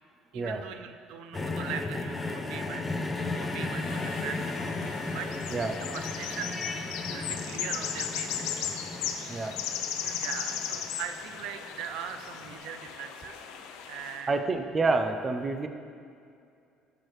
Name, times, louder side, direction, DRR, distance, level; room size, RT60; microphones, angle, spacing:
voice 1, 0.3-5.5 5.9-6.6 7.1-8.5 10.0-14.3, right 8 dB, 80° right, 8 dB, 0.5 m, -41 dB
sound 1, 1.3-11.5 12.4-12.5, left 3 dB, 15° left, 0.6 m, -35 dB
sound 2, 3.7-14.2, left 8 dB, 90° left, 0.6 m, -37 dB
voice 2, 14.3-15.7, right 3 dB, 25° right, 7 dB, 0.5 m, -28 dB
11.5 x 6.6 x 3.2 m, 2.4 s
cardioid pair, 130°, 0 cm